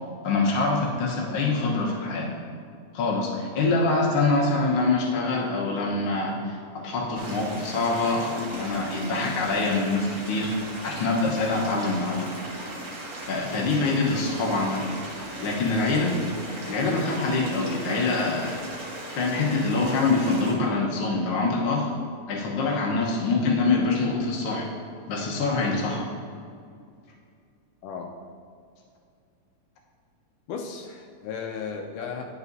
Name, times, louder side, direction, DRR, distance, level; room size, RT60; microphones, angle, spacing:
voice 1, 0.2-2.3 2.9-10.5 10.8-12.3 13.3-14.9 15.4-16.2 16.7-18.6 19.2-21.9 22.3-24.7 25.1-26.1, left 3 dB, 65° left, -2 dB, 1.4 m, -25 dB
sound 1, 7.2-20.5, right 1 dB, 75° right, 0.8 m, -38 dB
voice 2, 30.5-32.3, left 6 dB, 80° left, 3 dB, 2.0 m, -35 dB
11.0 x 6.2 x 2.6 m, 2.3 s
omnidirectional pair, 3.8 m